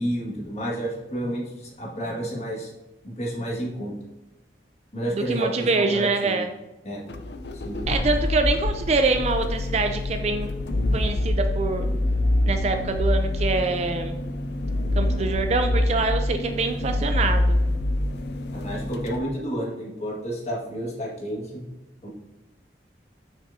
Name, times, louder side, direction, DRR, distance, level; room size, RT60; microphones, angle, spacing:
voice 1, 0.0-2.7 3.0-3.9 4.9-6.4 6.8-7.0 7.5-7.8 18.5-21.6 22.0-22.1, right 1 dB, 40° left, -4 dB, 1.8 m, -30 dB
voice 2, 5.1-6.5 7.9-10.5 10.9-11.9 12.5-14.2 15.0-17.6, right 3 dB, 35° right, 6 dB, 0.4 m, -25 dB
sound 1, 7.1-19.2, left 1 dB, 70° left, 0.6 m, -25 dB
7.2 x 6.0 x 2.7 m, 0.99 s
head